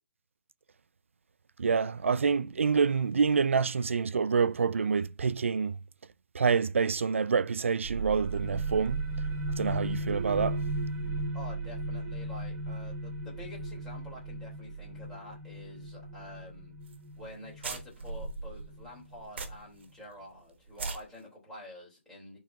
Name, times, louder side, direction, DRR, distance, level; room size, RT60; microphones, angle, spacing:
voice 1, 1.6-5.8 6.3-9.1 9.6-10.6, right 5 dB, 80° right, 0.4 m, -27 dB
sound 1, 7.8-19.2, right 2 dB, 20° right, 1.0 m, -36 dB
voice 2, 11.3-16.7 17.2-22.4, left 1 dB, 5° left, 3.6 m, -48 dB
sound 2, 16.9-17.0 17.3-17.4 17.6-19.9 20.2-20.3 20.7-21.0, right 4 dB, 60° right, 1.3 m, -38 dB
11.5 x 3.9 x 2.8 m
hypercardioid pair, 150°, 7 cm